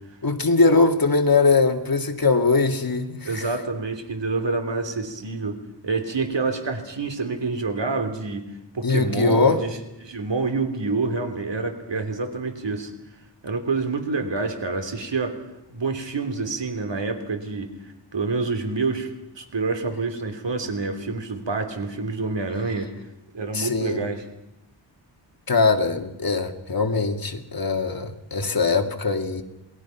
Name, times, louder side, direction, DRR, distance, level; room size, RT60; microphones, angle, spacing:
voice 1, 0.2-3.5 8.8-9.6 23.5-24.0 25.5-29.4, left 4 dB, 50° left, 2.3 m, -21 dB
voice 2, 3.2-5.6 5.8-8.5 8.7-12.9 13.4-15.4 15.7-19.1 19.3-22.9 23.3-24.2, right 3 dB, 65° right, 3.4 m, -27 dB
28.0 x 20.0 x 5.9 m
wide cardioid pair, 85°, 46 cm